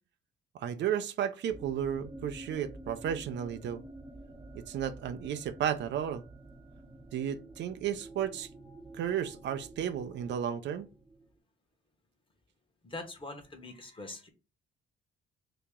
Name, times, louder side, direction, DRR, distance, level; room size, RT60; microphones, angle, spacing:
voice 1, 0.5-3.8 4.5-6.2 7.1-8.5 8.9-10.9, right 9 dB, 65° right, 0.4 m, -33 dB
sound 1, 1.5-11.3, right 1 dB, 15° right, 0.7 m, -49 dB
voice 2, 12.8-14.3, left 2 dB, 25° left, 1.1 m, -43 dB
2.9 x 2.8 x 3.6 m
cardioid pair, 90°, 20 cm